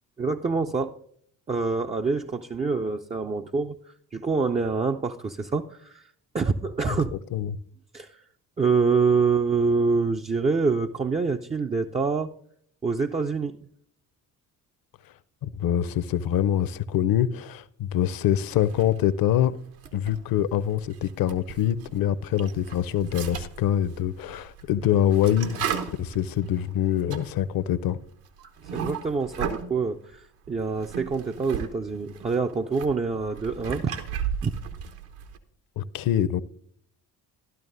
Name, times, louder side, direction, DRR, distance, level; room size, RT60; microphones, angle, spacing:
voice 1, 0.2-1.0 1.5-3.8 4.1-6.1 6.3-7.2 7.9-8.2 8.6-12.3 12.8-13.6 28.7-33.9 34.4-34.5, right 4 dB, 15° right, 0.4 m, -26 dB
voice 2, 15.4-19.5 19.9-28.0 35.8-36.4, left 10 dB, 50° left, 0.7 m, -25 dB
sound 1, 18.6-19.3 19.7-22.0 22.3-29.8 30.5-31.7 32.0-35.4, right 8 dB, 75° right, 1.1 m, -36 dB
12.5 x 12.0 x 2.6 m
hypercardioid pair, 50°, 47 cm